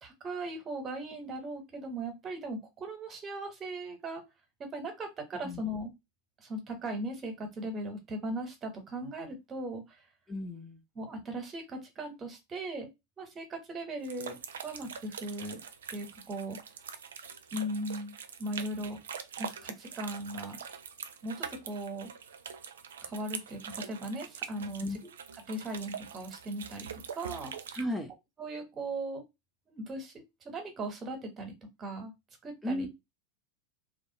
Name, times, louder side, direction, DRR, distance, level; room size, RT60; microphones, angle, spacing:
voice 1, 0.0-4.2 4.6-5.9 6.4-10.0 10.9-12.9 13.2-14.4 14.6-15.6 15.9-16.6 17.5-19.0 19.4-20.6 21.2-22.1 23.0-25.0 25.3-26.9 27.1-27.5 28.4-29.2 29.7-32.1 32.4-32.9, right 1 dB, 30° right, 1.0 m, -38 dB
voice 2, 10.3-10.8 24.8-25.0 27.7-28.1 32.6-32.9, left 1 dB, 5° left, 0.6 m, -34 dB
sound 1, 14.0-27.8, right 7 dB, 80° right, 0.4 m, -44 dB
2.5 x 2.3 x 2.8 m
hypercardioid pair, 100°, 0 cm